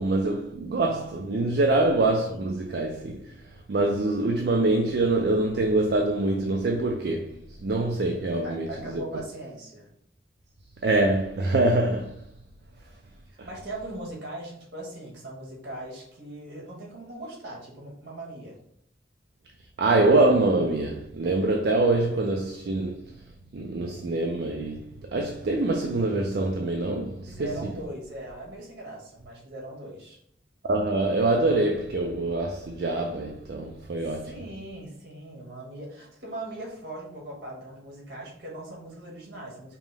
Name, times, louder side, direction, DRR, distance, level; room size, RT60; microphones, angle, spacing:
voice 1, 0.0-3.4 3.7-9.0 10.8-12.1 13.4-13.5 19.8-23.0 23.5-27.5 30.6-34.3, right 2 dB, 60° right, 0.4 m, -25 dB
voice 2, 8.4-9.9 13.4-18.6 27.3-30.2 34.0-39.8, right 1 dB, 75° right, 1.4 m, -39 dB
5.2 x 2.1 x 3.3 m
head